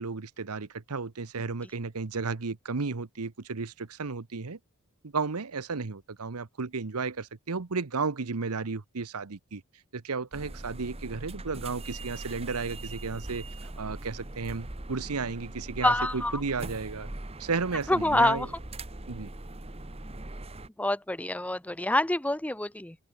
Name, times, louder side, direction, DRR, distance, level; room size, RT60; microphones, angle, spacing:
voice 1, 0.0-4.6 5.0-9.6 9.9-17.1 17.4-18.5 19.1-19.3, right 4 dB, 90° right, 1.0 m, -33 dB
sound 1, 10.3-20.7, right 2 dB, 25° right, 1.4 m, -41 dB
voice 2, 15.8-16.4 17.9-18.5 20.8-23.0, left 1 dB, 5° left, 0.6 m, -26 dB
open air
head